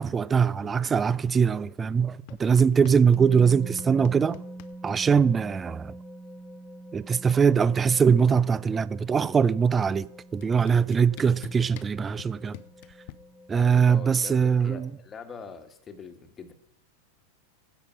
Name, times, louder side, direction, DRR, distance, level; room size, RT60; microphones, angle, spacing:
voice 1, 0.0-4.4 4.8-5.9 6.9-10.1 10.3-12.6 13.5-14.9, right 6 dB, 20° right, 0.3 m, -22 dB
sound 1, 2.3-3.3 3.5-5.3 6.6-6.7 6.9-7.3 7.6-8.9 9.8-9.9 10.4-13.1, left 14 dB, 45° left, 0.7 m, -46 dB
sound 2, 3.1-13.7, right 1 dB, ahead, 1.4 m, -44 dB
voice 2, 13.5-16.5, left 5 dB, 20° left, 1.4 m, -43 dB
16.0 x 5.9 x 5.2 m
figure-of-eight pair, 90°, 0 cm